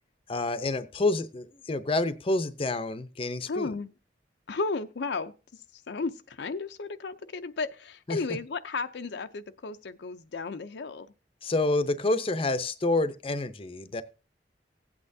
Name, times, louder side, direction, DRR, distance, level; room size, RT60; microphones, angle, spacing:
voice 1, 0.3-3.7 8.1-8.2 11.4-14.0, left 2 dB, 30° left, 0.6 m, -28 dB
voice 2, 3.5-3.9 4.5-5.3 5.9-11.1, left 3 dB, 75° left, 0.5 m, -34 dB
15.5 x 8.7 x 2.7 m
head